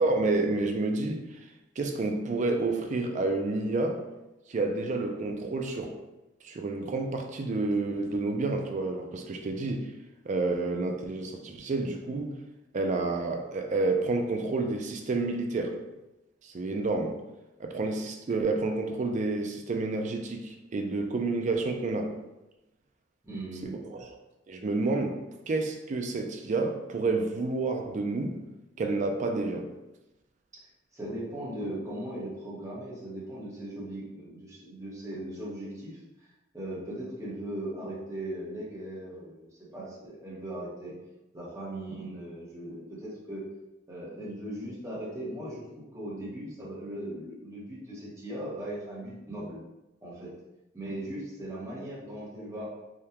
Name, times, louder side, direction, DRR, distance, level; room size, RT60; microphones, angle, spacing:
voice 1, 0.0-1.4 1.8-4.0 4.5-6.0 6.4-9.9 10.3-12.3 12.7-15.8 16.4-17.2 17.6-22.2 23.6-24.1 24.5-25.2 25.5-28.4 28.8-29.7, right 3 dB, 40° right, 4 dB, 0.3 m, -29 dB
voice 2, 23.2-23.8 30.9-36.0 36.5-40.9 41.3-43.4 43.9-49.6 50.0-50.3 50.7-52.7, right 1 dB, 15° right, -7 dB, 0.9 m, -38 dB
3.5 x 2.2 x 2.8 m, 0.98 s
head